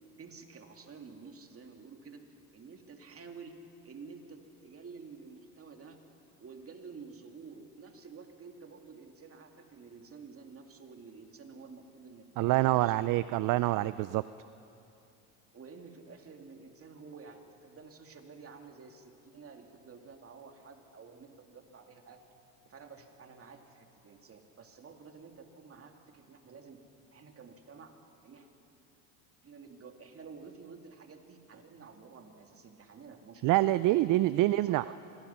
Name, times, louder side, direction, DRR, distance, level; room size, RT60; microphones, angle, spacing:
voice 1, 0.2-2.2 2.5-3.6 3.8-6.0 6.4-13.0 15.5-22.2 22.6-26.8 27.1-28.0 28.2-28.5 29.4-33.4 33.9-35.0, right 5 dB, 30° right, 4 dB, 2.5 m, -50 dB
voice 2, 12.4-14.2 33.4-34.8, right 17 dB, 45° right, 16 dB, 0.5 m, -26 dB
25.5 x 20.0 x 5.8 m, 2.7 s
supercardioid pair, 90°, 44 cm